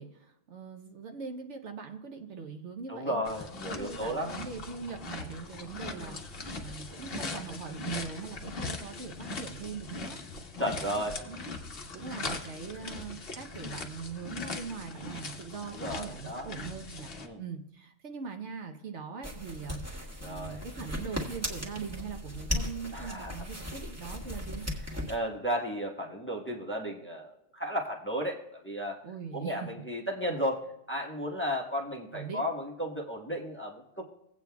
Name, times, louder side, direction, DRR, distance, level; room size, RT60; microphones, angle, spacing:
voice 1, 0.0-3.2 3.8-10.2 10.8-11.5 11.9-24.6 29.0-29.7 32.1-32.4, right 5 dB, 65° right, 4 dB, 1.1 m, -41 dB
voice 2, 2.9-4.3 5.9-6.2 10.6-11.2 15.7-16.5 17.2-17.4 20.2-20.6 22.9-23.4 25.1-29.0 29.3-34.0, equal, 10° left, -1 dB, 1.2 m, -34 dB
sound 1, 3.2-17.3, left 3 dB, 50° left, 1.2 m, -40 dB
sound 2, 19.2-25.2, left 1 dB, 10° right, 1.6 m, -37 dB
18.5 x 8.3 x 2.3 m, 0.82 s
omnidirectional pair, 1.3 m